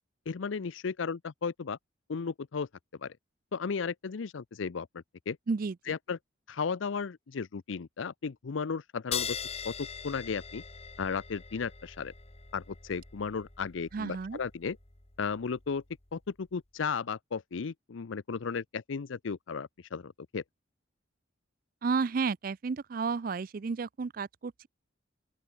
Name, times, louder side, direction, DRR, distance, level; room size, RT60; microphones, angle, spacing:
voice 1, 0.3-1.8 2.1-3.2 3.5-5.4 5.9-6.2 6.5-9.4 9.6-10.6 11.0-12.1 12.5-14.8 15.2-15.8 16.1-20.4, left 5 dB, 80° left, 0.5 m, -35 dB
sound 1, 9.1-16.1, left 7 dB, 30° left, 1.9 m, -42 dB
voice 2, 13.9-14.4 21.8-24.7, right 4 dB, 45° right, 0.4 m, -32 dB
open air
head